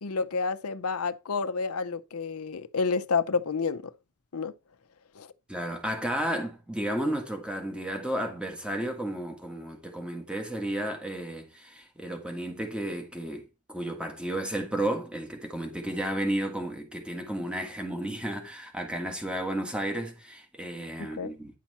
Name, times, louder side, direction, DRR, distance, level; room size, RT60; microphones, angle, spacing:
voice 1, 0.0-3.9 4.3-4.5 5.2-5.3 21.0-21.3, left 4 dB, 80° left, 0.7 m, -29 dB
voice 2, 5.5-21.6, right 1 dB, 5° right, 1.6 m, -33 dB
10.0 x 5.8 x 4.2 m
head